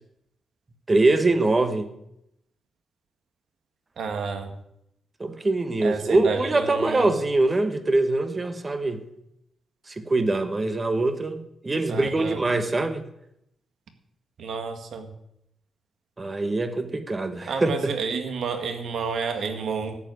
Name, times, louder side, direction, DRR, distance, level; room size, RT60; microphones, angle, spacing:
voice 1, 0.9-1.9 5.2-9.0 9.9-11.4 11.6-13.0 16.2-18.0, right 2 dB, 20° right, 1.3 m, -23 dB
voice 2, 4.0-4.5 5.8-7.1 11.9-12.4 14.4-15.1 17.5-20.0, right 5 dB, 70° right, 1.9 m, -30 dB
13.5 x 7.7 x 9.4 m
wide cardioid pair, 150°, 0 cm